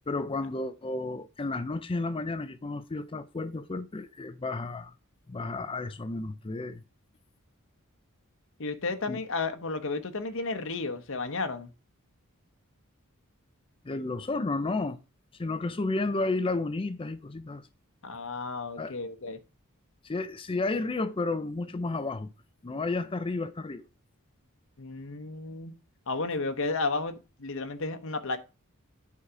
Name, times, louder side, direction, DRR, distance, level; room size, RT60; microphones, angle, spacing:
voice 1, 0.1-4.9 5.3-6.8 9.1-9.2 13.8-15.0 15.4-17.6 18.8-18.9 20.0-22.3 22.6-23.8, left 3 dB, 25° left, 0.5 m, -32 dB
voice 2, 8.6-11.7 18.0-19.4 24.8-25.7 26.1-28.4, left 3 dB, 65° left, 0.9 m, -33 dB
8.5 x 4.7 x 5.0 m
head